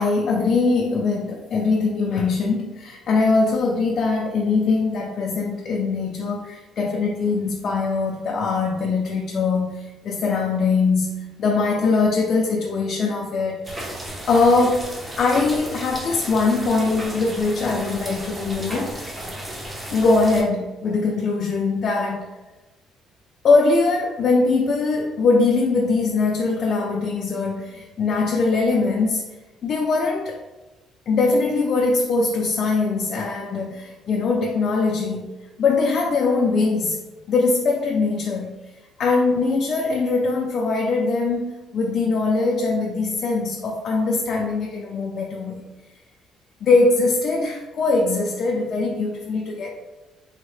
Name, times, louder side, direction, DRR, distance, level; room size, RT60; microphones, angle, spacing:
voice 1, 0.0-14.0 14.3-14.9 15.2-19.2 19.9-22.3 23.4-29.2 29.6-30.4 31.1-35.3 35.6-37.0 37.3-38.5 39.0-45.6 46.6-49.7, left 3 dB, 45° left, -1 dB, 0.3 m, -21 dB
sound 1, 13.6-20.4, right 1 dB, 15° right, 0.5 m, -34 dB
3.4 x 2.1 x 3.2 m, 1.1 s
cardioid pair, 155°, 0 cm